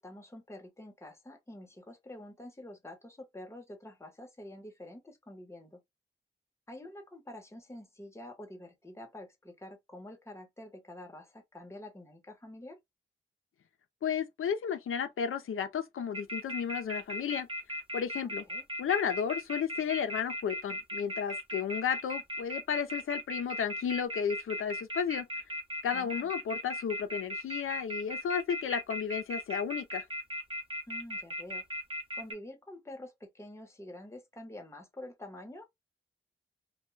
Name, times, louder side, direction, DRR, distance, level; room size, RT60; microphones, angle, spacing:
voice 1, 0.0-5.8 6.7-12.8 18.2-18.6 25.9-26.3 30.9-31.6 32.1-35.6, left 1 dB, 15° left, 0.9 m, -47 dB
voice 2, 14.0-17.5 17.9-18.4 18.8-25.3 25.8-30.1, left 7 dB, 85° left, 0.4 m, -33 dB
sound 1, 16.1-32.3, equal, 25° right, 0.9 m, -37 dB
2.2 x 2.1 x 3.0 m
wide cardioid pair, 105°, 21 cm